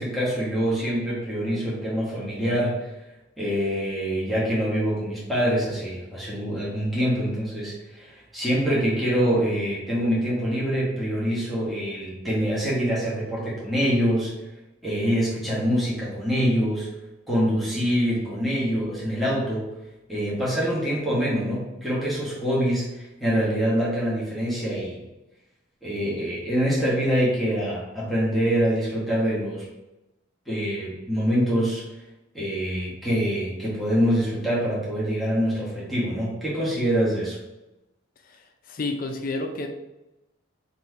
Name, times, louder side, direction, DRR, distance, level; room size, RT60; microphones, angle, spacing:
voice 1, 0.0-2.9 3.4-14.3 14.8-16.9 17.3-19.7 20.1-25.0 25.8-29.6 30.5-31.8 32.3-37.4, equal, ahead, -7 dB, 1.1 m, -25 dB
voice 2, 38.2-39.7, left 2 dB, 45° left, 4 dB, 0.5 m, -31 dB
4.2 x 2.7 x 4.5 m, 0.98 s
head